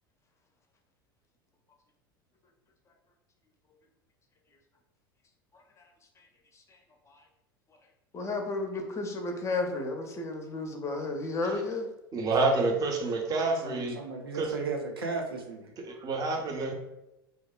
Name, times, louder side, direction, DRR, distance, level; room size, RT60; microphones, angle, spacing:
voice 1, 8.1-11.9, left 3 dB, 25° left, 4 dB, 0.4 m, -32 dB
voice 2, 12.1-14.0 14.3-14.6 15.8-16.7, right 3 dB, 30° right, 2 dB, 0.5 m, -28 dB
voice 3, 13.6-15.7, right 3 dB, 80° right, 1 dB, 0.4 m, -35 dB
2.7 x 2.0 x 2.3 m, 0.92 s
figure-of-eight pair, 75°, 12 cm